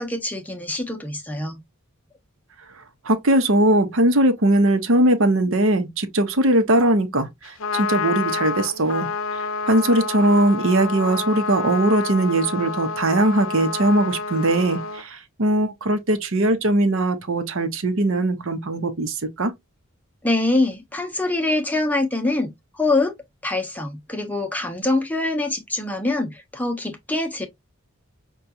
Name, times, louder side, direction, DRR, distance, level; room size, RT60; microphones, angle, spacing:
voice 1, 0.0-1.6 20.2-23.1 23.4-27.5, left 2 dB, 10° left, 0.6 m, -24 dB
voice 2, 3.0-19.5, right 1 dB, 65° right, 0.8 m, -20 dB
Trumpet, 7.4-15.0, left 4 dB, 70° left, 0.6 m, -28 dB
5.7 x 2.3 x 2.7 m
head